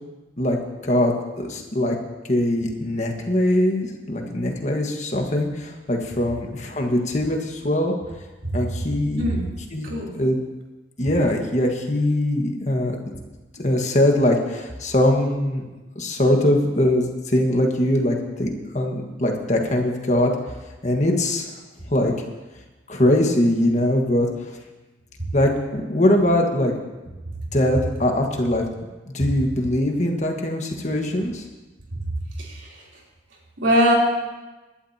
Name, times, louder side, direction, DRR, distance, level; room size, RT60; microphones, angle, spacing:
voice 1, 0.8-2.0 2.3-7.9 8.5-9.2 9.7-9.9 10.1-10.4 11.0-13.0 13.5-15.6 15.9-20.3 20.8-21.5 21.9-22.1 22.9-24.3 25.3-26.7 27.5-28.7 29.1-31.4, left 1 dB, 40° left, 2 dB, 1.5 m, -21 dB
voice 2, 9.8-10.1 32.3-33.0 33.6-33.9, equal, 85° right, -3 dB, 3.4 m, -22 dB
22.0 x 11.5 x 2.9 m, 1.2 s
head